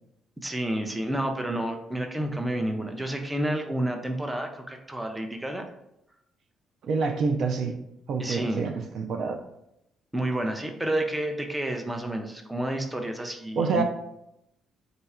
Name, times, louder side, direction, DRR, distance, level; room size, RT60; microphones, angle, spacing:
voice 1, 0.4-5.7 8.2-8.7 10.1-13.8, right 1 dB, 10° right, 4 dB, 0.5 m, -30 dB
voice 2, 6.8-7.8 8.1-9.4 13.6-13.8, right 4 dB, 65° right, 5 dB, 0.4 m, -27 dB
3.9 x 2.3 x 4.2 m, 0.82 s
cardioid pair, 90°, 0 cm